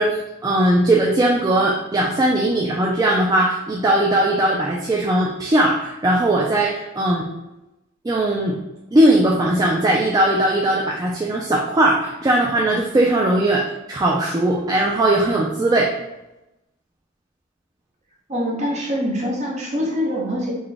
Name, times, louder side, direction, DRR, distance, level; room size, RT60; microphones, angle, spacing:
voice 1, 0.0-7.3 8.0-8.6 8.9-15.9, right 1 dB, 20° right, -2 dB, 0.3 m, -19 dB
voice 2, 18.3-20.5, equal, 35° right, -2 dB, 0.9 m, -24 dB
3.9 x 2.2 x 3.4 m, 0.95 s
head